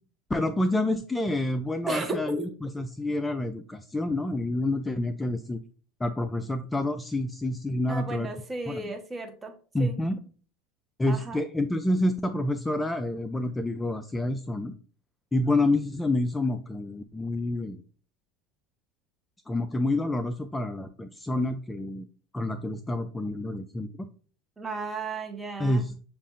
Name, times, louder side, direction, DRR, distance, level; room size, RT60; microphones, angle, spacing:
voice 1, 0.3-5.6 6.0-8.3 8.7-8.8 9.7-10.2 11.0-14.7 15.3-17.8 19.5-22.1 22.3-23.9 25.6-26.0, left 1 dB, 10° left, 9 dB, 0.3 m, -28 dB
voice 2, 1.9-2.5 7.9-10.0 11.1-11.4 24.6-25.8, right 3 dB, 20° right, 5 dB, 0.9 m, -34 dB
6.7 x 2.4 x 2.5 m, 0.41 s
hypercardioid pair, 95°, 0 cm